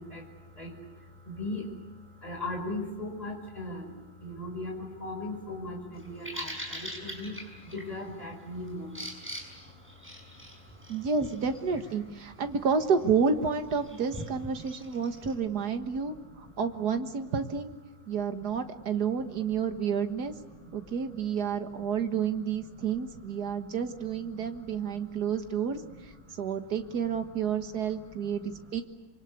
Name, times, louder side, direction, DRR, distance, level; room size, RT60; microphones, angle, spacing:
voice 1, 0.0-9.1 18.4-18.5 20.5-20.9 21.7-22.1 22.3-22.4 22.8-22.9 23.4-23.5 24.0-25.3 25.8-25.9 27.0-27.1 27.9-28.3, left 2 dB, 20° left, 0 dB, 5.6 m, -39 dB
Bird vocalization bird call bird song, 5.9-15.3, equal, 5° right, 6.0 m, -44 dB
voice 2, 10.9-17.7 18.1-20.3 20.7-26.1 26.4-28.8, right 6 dB, 60° right, 7 dB, 2.0 m, -30 dB
26.5 x 25.0 x 8.4 m, 1.2 s
omnidirectional pair, 2.0 m